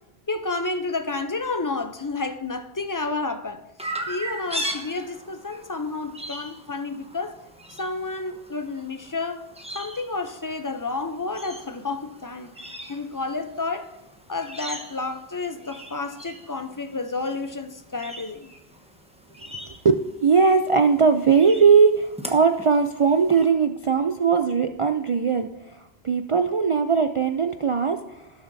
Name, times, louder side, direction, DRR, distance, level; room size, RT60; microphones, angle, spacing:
voice 1, 0.3-3.6 4.1-7.4 7.7-9.5 9.7-12.6 12.9-13.9 14.3-18.5, left 3 dB, 30° left, 0.4 m, -30 dB
Chirp tweet, 3.8-23.4, right 1 dB, 5° right, 0.9 m, -40 dB
voice 2, 19.8-28.3, right 5 dB, 60° right, 0.3 m, -20 dB
17.5 x 6.9 x 2.7 m
omnidirectional pair, 1.1 m